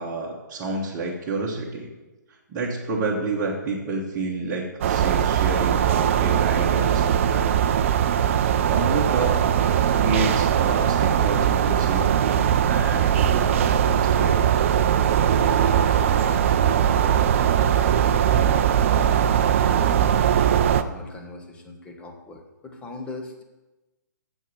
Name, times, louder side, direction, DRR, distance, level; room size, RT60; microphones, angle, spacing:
voice 1, 0.0-1.9 2.5-7.5 8.2-9.4 9.9-14.4, right 3 dB, 25° right, -4 dB, 1.3 m, -29 dB
sound 1, 4.8-20.8, right 9 dB, 40° right, 0.5 m, -20 dB
voice 2, 15.3-19.3 19.6-20.2 20.7-23.4, left 2 dB, 10° left, 3 dB, 1.1 m, -39 dB
7.2 x 7.2 x 6.6 m, 1.1 s
figure-of-eight pair, 130°, 10 cm